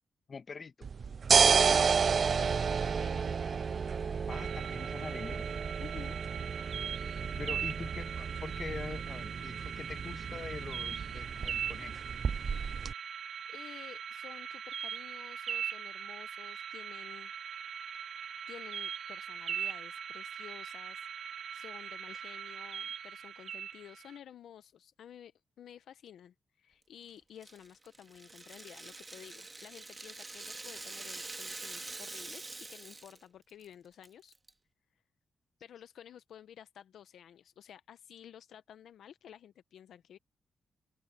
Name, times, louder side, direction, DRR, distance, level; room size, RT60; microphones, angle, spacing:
voice 1, 0.3-0.9 4.3-5.5 7.4-12.0, left 5 dB, 50° left, 1.3 m, -44 dB
sound 1, 0.8-12.9, right 6 dB, 60° right, 0.3 m, -31 dB
voice 2, 1.3-3.2 5.8-6.2 12.9-13.1 13.5-17.3 18.5-21.1 21.5-34.4 35.6-40.2, left 9 dB, 80° left, 0.7 m, -52 dB
sound 2, 4.3-24.2, right 8 dB, 75° right, 1.0 m, -41 dB
Rattle (instrument), 27.4-33.2 33.5-33.6 34.0-34.5, right 3 dB, 30° right, 1.8 m, -45 dB
open air
cardioid pair, 55°, 0 cm